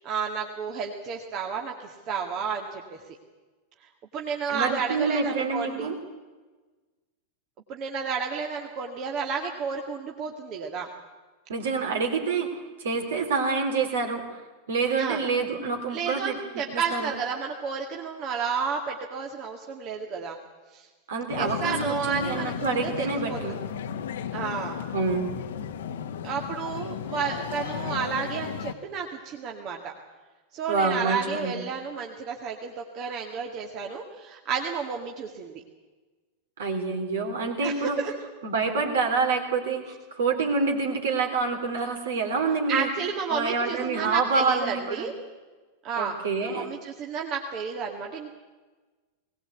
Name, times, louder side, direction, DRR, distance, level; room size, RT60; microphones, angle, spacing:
voice 1, 0.0-3.0 4.1-5.9 7.7-10.9 15.0-15.2 15.9-20.4 20.7-20.9 21.4-23.4 24.3-24.8 26.2-29.9 30.5-35.6 37.6-38.1 42.7-45.1 45.8-48.3, right 6 dB, 35° right, 1 dB, 2.1 m, -31 dB
voice 2, 4.5-6.0 11.5-12.5 12.8-14.4 14.7-17.1 21.1-23.6 24.9-25.2 30.7-31.6 36.6-38.0 38.4-42.9 43.3-45.1 46.0-46.7, right 4 dB, 60° right, 4 dB, 3.6 m, -27 dB
sound 1, 21.3-28.7, left 7 dB, 60° left, 1.2 m, -34 dB
20.5 x 19.0 x 8.3 m, 1.3 s
figure-of-eight pair, 90°, 0 cm